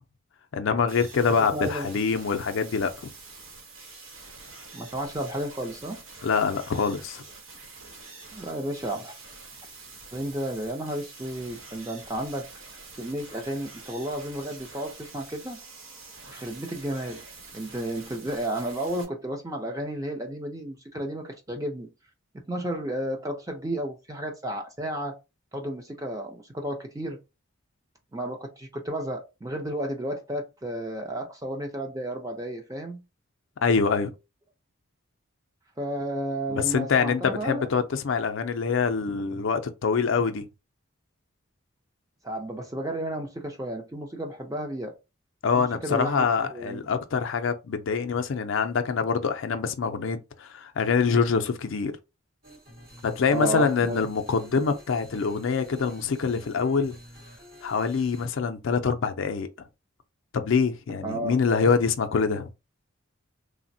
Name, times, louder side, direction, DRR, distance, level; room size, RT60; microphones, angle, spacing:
voice 1, 0.5-3.1 6.2-7.2 33.6-34.1 36.5-40.4 45.4-51.9 53.0-57.0 57.6-59.5 60.3-62.5, left 5 dB, 65° left, 0.4 m, -25 dB
sound 1, 0.9-19.0, right 3 dB, 70° right, 0.9 m, -46 dB
voice 2, 1.5-1.9 4.7-6.0 8.3-9.1 10.1-12.5 13.0-15.6 16.3-17.2 17.5-21.9 22.5-25.2 25.5-27.2 28.1-33.0 35.8-37.6 42.2-44.9 45.5-46.2 46.5-46.9 53.3-54.0 61.0-61.4, right 1 dB, 15° right, 0.5 m, -32 dB
sound 2, 52.4-58.3, equal, 45° right, 1.0 m, -49 dB
3.3 x 2.1 x 2.6 m
head